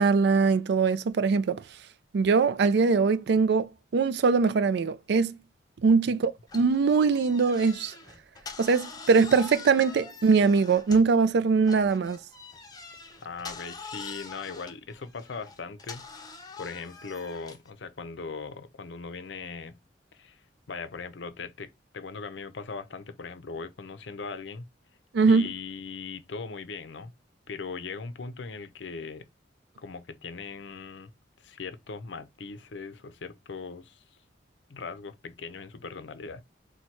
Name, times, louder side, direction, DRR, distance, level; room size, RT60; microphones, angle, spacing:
voice 1, 0.0-1.6 2.1-5.4 5.8-7.9 8.6-12.2 25.1-25.5, right 4 dB, 65° right, 0.4 m, -22 dB
cellar door, 6.5-11.2 11.6-17.7, left 4 dB, 20° left, 0.6 m, -44 dB
voice 2, 13.2-19.8 20.1-20.4 20.7-24.7 25.3-27.1 27.5-29.3 29.8-31.1 31.4-34.0 34.7-36.4, left 4 dB, 80° left, 0.6 m, -39 dB
4.3 x 2.2 x 4.5 m
head